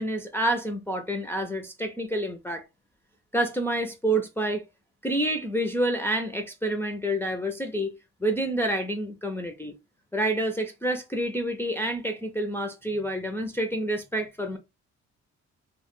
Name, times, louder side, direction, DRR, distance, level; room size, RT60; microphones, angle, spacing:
voice 1, 0.0-2.6 3.3-4.6 5.0-7.9 8.2-9.7 10.1-14.6, right 1 dB, 10° left, 0.3 m, -28 dB
2.1 x 2.0 x 3.0 m
cardioid pair, 90°, 30 cm